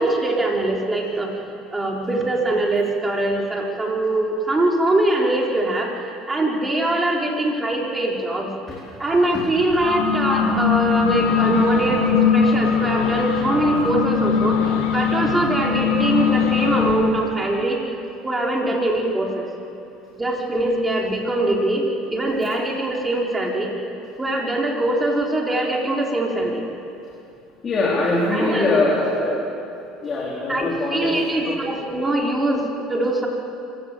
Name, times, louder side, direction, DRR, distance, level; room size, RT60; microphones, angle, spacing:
voice 1, 0.0-1.3 1.7-8.5 9.0-17.8 18.2-19.5 20.2-23.7 24.2-26.6 28.3-28.7 29.1-29.4 30.5-33.3, right 1 dB, 15° right, -1 dB, 4.4 m, -22 dB
sound 1, 9.7-16.9, left 6 dB, 85° left, 5.4 m, -20 dB
voice 2, 27.6-29.1 30.0-31.7, left 2 dB, 35° left, -4 dB, 4.0 m, -22 dB
25.0 x 16.5 x 7.8 m, 2.7 s
supercardioid pair, 100°, 0 cm